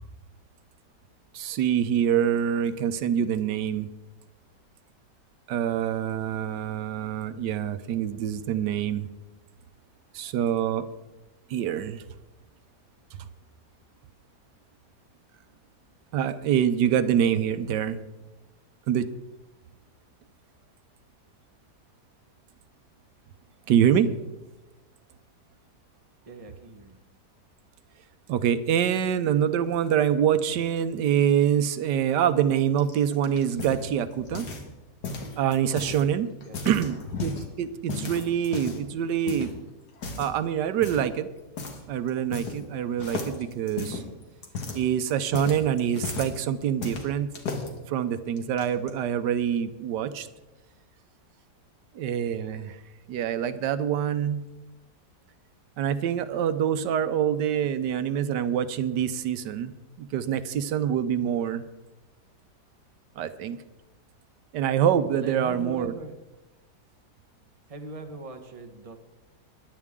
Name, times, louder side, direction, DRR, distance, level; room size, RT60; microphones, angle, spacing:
voice 1, 1.3-3.9 5.5-9.1 10.1-10.9 11.5-12.0 16.1-18.0 18.9-19.1 23.7-24.1 28.3-34.4 35.4-36.3 36.6-39.5 40.2-41.3 41.9-44.0 44.7-47.3 47.9-50.3 51.9-52.8 53.1-54.5 55.8-59.7 60.0-61.7 63.2-63.6 64.5-65.9, right 9 dB, 85° right, 12 dB, 1.3 m, -25 dB
voice 2, 26.3-27.0 36.4-36.6 65.1-66.1 67.7-69.0, right 3 dB, 25° right, 5 dB, 1.1 m, -40 dB
sound 1, 32.8-34.7 35.0-36.0 36.4-37.5 37.9-38.9 39.3-39.5 40.0-40.3 40.8-41.1 41.6-41.8 42.1-42.7 43.0-46.4 46.8-47.7 48.4-48.9, left 4 dB, 70° left, 2.2 m, -35 dB
20.5 x 11.0 x 3.7 m, 1.0 s
omnidirectional pair, 1.8 m